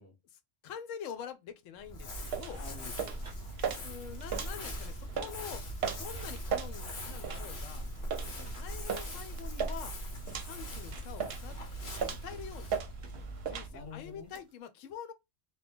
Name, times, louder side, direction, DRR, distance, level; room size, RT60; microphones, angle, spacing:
voice 1, 0.3-2.6 3.8-5.6 5.9-7.9 8.5-9.9 10.4-11.5 12.2-12.7 13.4-15.1, left 8 dB, 90° left, 0.9 m, -45 dB
Crumpling crinkling, 1.8-14.3, equal, 60° left, 1.1 m, -41 dB
sound 1, 2.1-12.0 12.3-14.6, right 2 dB, 30° right, 0.8 m, -59 dB
sound 2, 2.3-13.7, right 6 dB, 65° right, 0.8 m, -39 dB
voice 2, 2.5-3.6 8.4-8.6 13.5-14.3, left 4 dB, 15° left, 0.7 m, -49 dB
2.9 x 2.2 x 3.4 m
omnidirectional pair, 1.3 m